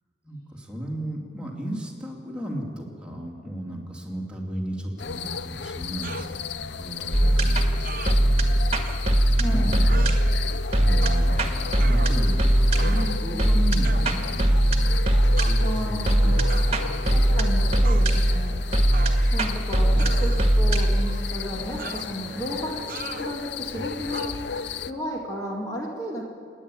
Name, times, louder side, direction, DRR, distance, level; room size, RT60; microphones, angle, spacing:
voice 1, 0.2-8.9 9.4-10.2 10.8-11.3 11.8-12.4 12.8-16.8 18.1-18.5 19.9-20.3 23.7-24.1, equal, 5° right, -2 dB, 2.9 m, -35 dB
sound 1, 5.0-24.9, left 7 dB, 70° left, 0.6 m, -35 dB
sound 2, 6.0-6.3 7.8-8.2 8.8-9.0 9.9-10.2 11.0-11.3 11.8-12.4 12.8-13.2 13.8-14.1 15.4-15.6 16.5-16.8 17.8-18.1 18.9-19.5 20.0-20.6 21.8-22.1 22.9-23.3 24.1-24.3, right 5 dB, 50° right, 0.8 m, -38 dB
sound 3, 7.1-24.3, right 1 dB, 35° right, 1.9 m, -21 dB
voice 2, 9.4-9.8 15.6-16.4 17.1-18.5 19.3-24.4 24.9-26.2, equal, 20° left, -3 dB, 2.2 m, -33 dB
29.5 x 10.0 x 8.8 m, 2.2 s
head